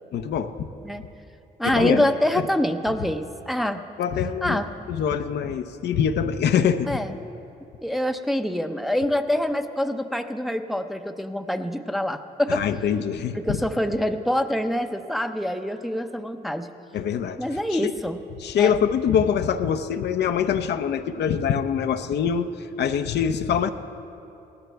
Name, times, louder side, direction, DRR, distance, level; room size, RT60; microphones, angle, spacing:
voice 1, 0.1-0.5 1.6-2.0 4.0-4.6 4.9-7.0 12.5-13.6 16.9-17.9 18.4-23.7, left 8 dB, 70° left, 8 dB, 0.7 m, -24 dB
voice 2, 1.6-3.8 4.4-4.7 6.9-7.1 7.8-12.7 13.3-16.7 17.4-18.2 18.6-18.8, equal, ahead, 7 dB, 0.7 m, -25 dB
18.5 x 14.0 x 3.4 m, 2.8 s
supercardioid pair, 65°, 18 cm